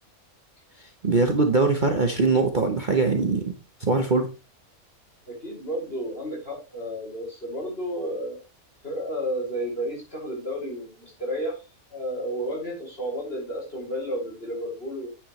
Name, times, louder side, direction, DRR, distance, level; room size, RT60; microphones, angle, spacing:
voice 1, 1.0-3.5 3.8-4.3, right 3 dB, 35° right, 4 dB, 1.1 m, -22 dB
voice 2, 5.3-8.4 8.8-11.6 11.9-15.1, equal, 40° left, -3 dB, 6.0 m, -32 dB
9.3 x 9.0 x 3.2 m, 0.29 s
omnidirectional pair, 1.5 m